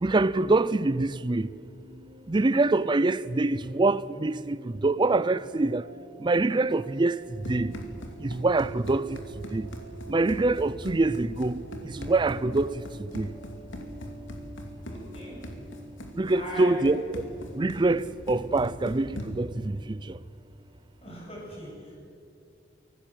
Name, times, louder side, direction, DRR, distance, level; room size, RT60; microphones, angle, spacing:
voice 1, 0.0-1.5 2.3-5.8 6.2-7.7 8.2-9.2 9.5-9.7 10.1-13.3 16.1-17.2 17.6-20.2, right 2 dB, 25° right, 0.5 m, -25 dB
sound 1, 1.2-20.7, right 3 dB, 80° right, 4.0 m, -48 dB
Run, 7.1-19.6, equal, 85° left, 2.7 m, -41 dB
voice 2, 14.8-15.4 16.3-17.0 21.0-21.9, left 1 dB, 30° left, 7.8 m, -40 dB
25.0 x 18.0 x 7.7 m
head